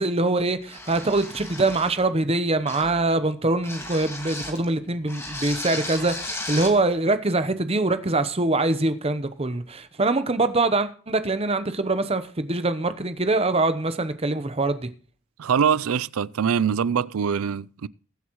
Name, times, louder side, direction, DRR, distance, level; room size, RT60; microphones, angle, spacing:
voice 1, 0.0-14.8, right 2 dB, 30° right, 0.9 m, -24 dB
sound 1, 0.7-2.0 2.7-3.0 3.6-4.6 5.1-6.8, left 2 dB, 10° left, 2.0 m, -35 dB
voice 2, 15.4-17.9, right 7 dB, 85° right, 0.4 m, -23 dB
21.5 x 8.0 x 3.1 m
head